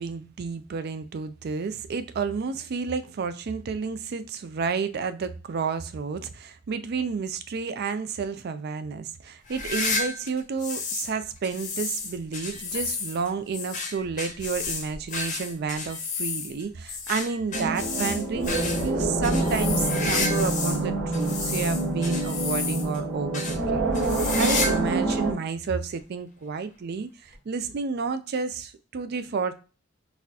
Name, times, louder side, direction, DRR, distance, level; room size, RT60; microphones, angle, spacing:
voice 1, 0.0-23.9 24.4-29.5, right 5 dB, 55° right, 0.4 m, -31 dB
sound 1, 9.5-11.1 11.4-20.8 21.1-23.0 23.3-23.6 23.9-24.8 25.1-25.2 26.0-26.1 27.3-27.4, left 4 dB, 40° left, 0.7 m, -31 dB
sound 2, 17.5-25.3, right 2 dB, 70° right, 1.1 m, -26 dB
4.0 x 2.4 x 2.7 m
head